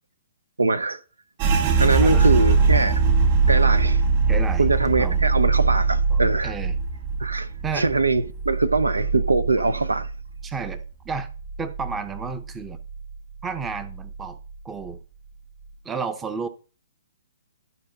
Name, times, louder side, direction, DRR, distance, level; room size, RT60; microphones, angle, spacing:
voice 1, 0.6-1.0 1.8-3.0 3.5-4.0 4.6-6.5 7.2-10.1, right 3 dB, 75° right, 0.6 m, -22 dB
sound 1, 1.4-10.8 11.1-12.3 12.6-13.1 13.6-14.2, right 4 dB, 35° right, 2.0 m, -22 dB
voice 2, 1.6-2.4 4.3-4.7 4.9-5.2 6.1-6.8 7.6-7.9 10.4-11.3 11.6-12.8 13.4-14.4 14.6-15.0 15.8-16.5, right 5 dB, 10° right, 0.7 m, -32 dB
12.0 x 5.4 x 4.0 m
figure-of-eight pair, 125°, 0 cm